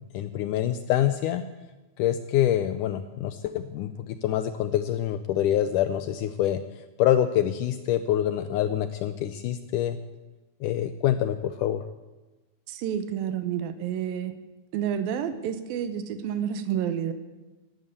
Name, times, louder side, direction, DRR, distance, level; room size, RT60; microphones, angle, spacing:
voice 1, 0.1-1.4 2.0-6.6 7.0-10.0 10.6-11.8, left 11 dB, 80° left, 11 dB, 1.9 m, -26 dB
voice 2, 12.7-14.3 14.7-17.1, right 9 dB, 80° right, 11 dB, 2.7 m, -29 dB
13.0 x 13.0 x 8.2 m, 1.1 s
omnidirectional pair, 4.2 m